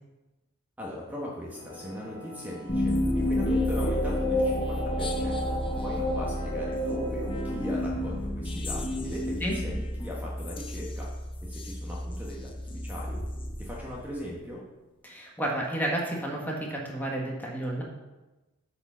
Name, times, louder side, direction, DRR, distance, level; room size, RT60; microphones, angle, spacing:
voice 1, 0.8-11.1 11.4-12.5 12.8-13.2 13.6-14.6, equal, 10° right, -4 dB, 1.3 m, -39 dB
sound 1, 1.5-8.2, left 1 dB, 75° left, 2.3 m, -46 dB
sound 2, 2.7-14.2, left 1 dB, 25° left, 0.8 m, -30 dB
voice 2, 15.0-17.8, right 1 dB, 10° left, -2 dB, 1.6 m, -31 dB
8.5 x 4.9 x 6.3 m, 1.1 s
head